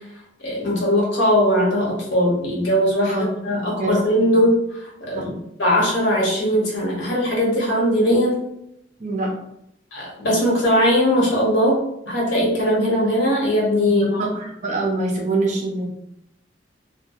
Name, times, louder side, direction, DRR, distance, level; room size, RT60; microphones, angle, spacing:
voice 1, 0.4-5.3 5.6-8.4 9.9-14.1, equal, 85° left, -4 dB, 1.0 m, -20 dB
voice 2, 3.1-4.0 4.3-4.4 5.1-5.3 9.0-9.4 13.9-15.9, right 2 dB, 40° right, 0 dB, 0.5 m, -25 dB
2.2 x 2.1 x 2.9 m, 0.78 s
head